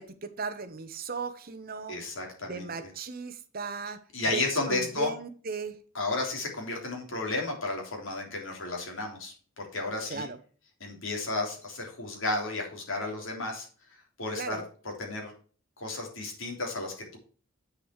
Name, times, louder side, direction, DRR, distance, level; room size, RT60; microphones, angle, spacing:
voice 1, 0.0-2.0 2.4-4.0 4.3-4.4 4.7-5.8 10.1-10.4 14.3-14.6, right 4 dB, 45° right, 0.9 m, -36 dB
voice 2, 1.9-2.9 4.1-5.1 5.9-10.3 10.8-13.7 14.2-15.3 15.8-17.2, left 2 dB, 65° left, 3.3 m, -33 dB
8.0 x 6.9 x 4.6 m
head